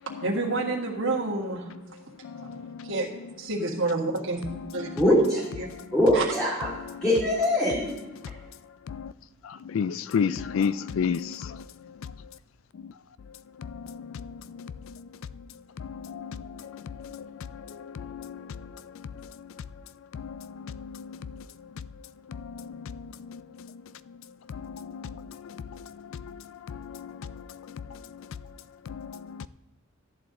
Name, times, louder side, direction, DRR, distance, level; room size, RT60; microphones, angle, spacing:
voice 1, 0.2-1.7 2.4-2.5 2.9-3.1 3.4-4.4 4.7-5.1 5.6-5.7 6.1-6.3, right 3 dB, 65° right, 1.7 m, -29 dB
voice 2, 2.2-2.9 4.6-5.0 6.7-7.0 8.9-9.1 9.4-11.6 12.0-12.1 12.8-12.9 13.6-15.1 15.8-16.4 17.0-19.5 20.1-21.5 22.3-23.8 24.5-28.3 28.9-29.5, left 6 dB, 75° left, 0.4 m, -35 dB
voice 3, 5.0-5.4 5.9-6.7 7.0-7.9, left 1 dB, 5° left, 2.4 m, -22 dB
13.5 x 10.5 x 3.8 m
head